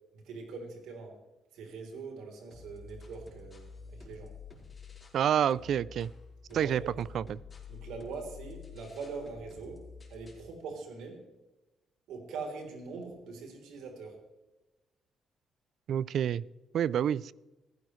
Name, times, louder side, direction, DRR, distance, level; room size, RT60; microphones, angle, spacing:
voice 1, 0.1-1.2 1.5-4.3 6.5-6.9 7.7-9.8 10.1-11.3 12.1-14.2, right 4 dB, 85° right, 2 dB, 3.5 m, -42 dB
sound 1, 2.5-5.2 5.5-10.5, left 5 dB, 25° left, 4.4 m, -49 dB
voice 2, 5.1-6.1 6.5-6.8 7.1-7.2 15.9-16.4 16.7-17.3, right 9 dB, 65° right, 21 dB, 0.4 m, -28 dB
16.0 x 14.5 x 3.2 m, 1.1 s
cardioid pair, 90°, 0 cm